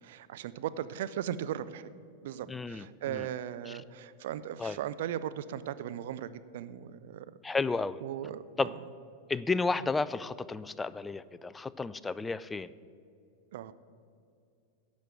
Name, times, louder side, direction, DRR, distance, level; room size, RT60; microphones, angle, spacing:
voice 1, 0.0-1.9 2.2-7.3 8.0-8.8 13.5-13.7, right 10 dB, 55° right, 14 dB, 0.4 m, -37 dB
voice 2, 2.5-3.3 3.7-3.8 4.6-4.8 7.4-8.0 8.6-8.7 9.3-12.7, left 4 dB, 10° left, 17 dB, 0.3 m, -32 dB
12.0 x 5.1 x 7.8 m, 2.4 s
figure-of-eight pair, 90°, 0 cm